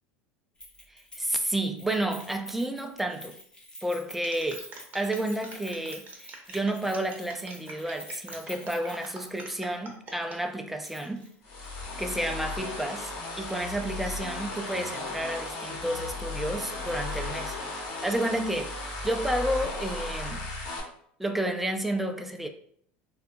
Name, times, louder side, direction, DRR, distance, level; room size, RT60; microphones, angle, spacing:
Keys jangling, 0.6-9.8 10.1-10.2 10.8-11.3 11.6-11.7, equal, 15° left, 0.7 m, -47 dB
voice 1, 1.2-3.4 3.8-4.7 4.9-11.3 12.0-17.6 17.8-20.5 21.2-22.5, right 1 dB, 5° right, 0.3 m, -31 dB
sound 1, 4.2-10.4 10.9-11.3, right 3 dB, 30° right, 0.6 m, -45 dB
sound 2, 11.4-20.8, left 2 dB, 65° left, 1.0 m, -35 dB
2.8 x 2.3 x 2.4 m
supercardioid pair, 115°, 6 cm